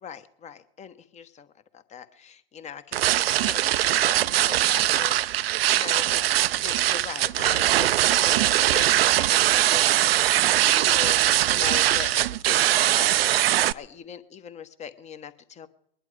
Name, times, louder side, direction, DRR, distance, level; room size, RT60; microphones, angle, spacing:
voice 1, 0.0-1.5 1.7-6.2 6.6-10.2 10.6-12.1 12.4-13.3 13.7-15.7, left 7 dB, 20° left, 12 dB, 1.1 m, -40 dB
sound 1, 2.9-13.7, right 13 dB, 65° right, 0.6 m, -21 dB
21.0 x 11.0 x 4.9 m, 0.72 s
hypercardioid pair, 110°, 31 cm